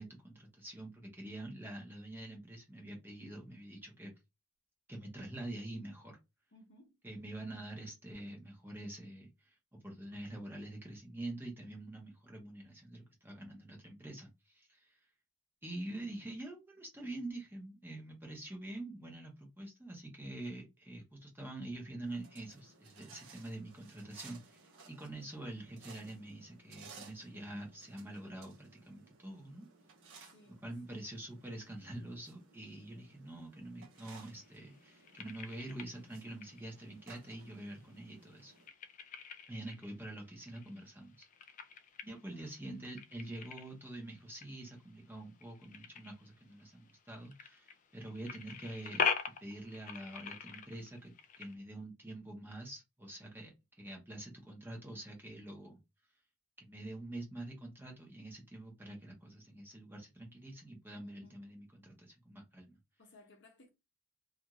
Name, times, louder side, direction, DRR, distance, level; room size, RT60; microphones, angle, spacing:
voice 1, 0.0-4.1 4.9-6.2 7.0-9.5 9.8-15.0 15.6-29.7 30.6-38.5 39.5-41.3 42.0-49.0 49.4-53.5 53.8-55.8 56.6-62.8, right 1 dB, 10° right, 0.8 m, -46 dB
voice 2, 6.5-7.0 15.9-16.3 30.3-30.6 30.9-31.1 39.7-39.9 42.3-42.6 61.0-61.4 63.0-63.7, left 1 dB, 50° left, 0.8 m, -61 dB
sound 1, 22.1-38.7, right 5 dB, 60° right, 0.8 m, -59 dB
sound 2, 34.0-51.5, left 6 dB, 35° left, 0.3 m, -43 dB
2.5 x 2.4 x 2.9 m
head